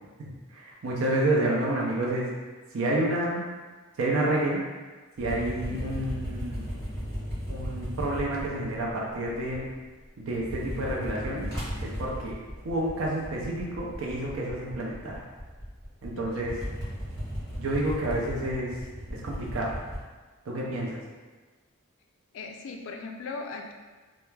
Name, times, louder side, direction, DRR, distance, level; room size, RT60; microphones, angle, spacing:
voice 1, 0.2-2.3 2.7-3.5 4.0-4.6 5.2-6.7 7.5-9.7 10.2-11.5 11.8-12.4 12.6-15.2 16.0-16.6 17.6-18.8 19.1-19.7 20.5-21.0, right 1 dB, 75° right, -3 dB, 0.4 m, -29 dB
sound 1, 5.2-9.9 10.2-20.0, equal, 15° left, 1.0 m, -37 dB
voice 2, 22.3-23.7, left 4 dB, 70° left, 3 dB, 0.3 m, -38 dB
2.2 x 2.0 x 3.1 m, 1.4 s
head